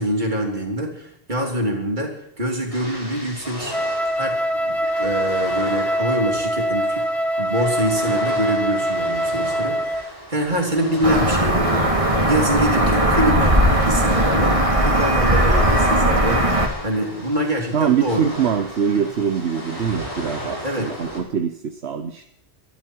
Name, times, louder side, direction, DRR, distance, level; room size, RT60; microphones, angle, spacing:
voice 1, 0.0-3.8 4.2-7.1 7.4-18.3 20.6-20.9, equal, 45° right, 1 dB, 3.6 m, -25 dB
sound 1, 2.7-21.2, left 1 dB, 30° left, 7.5 m, -36 dB
Wind instrument woodwind instrument, 3.7-10.1, right 1 dB, ahead, 0.9 m, -23 dB
sound 2, 11.0-16.7, right 1 dB, 30° right, 2.5 m, -18 dB
voice 2, 17.7-22.2, right 7 dB, 70° right, 7 dB, 1.2 m, -23 dB
24.5 x 11.5 x 4.6 m, 0.75 s
omnidirectional pair, 1.1 m